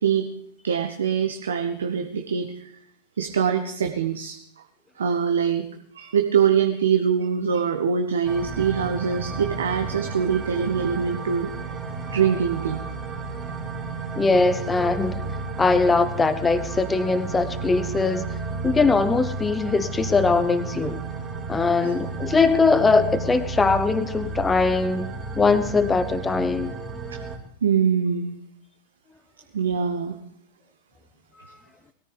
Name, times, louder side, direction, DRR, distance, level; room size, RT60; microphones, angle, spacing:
voice 1, 0.6-2.7 3.2-4.4 5.0-5.7 5.9-11.5 12.0-12.8 21.8-22.0 27.1-27.2 27.6-28.3 29.5-30.2, right 7 dB, 65° right, 5 dB, 1.0 m, -23 dB
sound 1, 8.2-27.4, right 4 dB, 20° right, 3.2 m, -32 dB
voice 2, 14.2-15.2 15.6-18.3 18.6-21.0 21.5-25.1 25.4-26.8, left 4 dB, 15° left, 12 dB, 1.1 m, -21 dB
20.5 x 14.0 x 3.5 m, 0.70 s
figure-of-eight pair, 90°, 0 cm